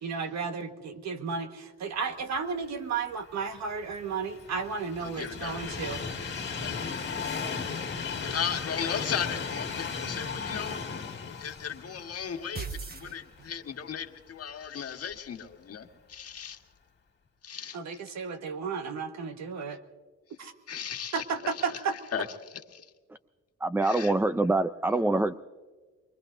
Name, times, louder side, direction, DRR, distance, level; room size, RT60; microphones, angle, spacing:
voice 1, 0.0-6.0 17.7-19.8 20.4-20.5 21.1-21.9, right 5 dB, 65° right, 7 dB, 1.5 m, -33 dB
Train, 3.4-13.5 13.9-14.0 15.1-15.2, left 5 dB, 35° left, 1.8 m, -36 dB
voice 2, 5.0-5.8 6.6-7.2 8.2-10.8 11.2-16.6 17.4-17.8 20.7-21.8 22.1-22.9 23.8-24.1, left 8 dB, 50° left, 5 dB, 1.5 m, -36 dB
sound 1, 12.6-13.8, right 5 dB, 30° right, 1.2 m, -38 dB
voice 3, 23.6-25.3, right 2 dB, 5° right, 11 dB, 0.4 m, -25 dB
23.5 x 23.0 x 2.6 m, 1.4 s
cardioid pair, 90°, 30 cm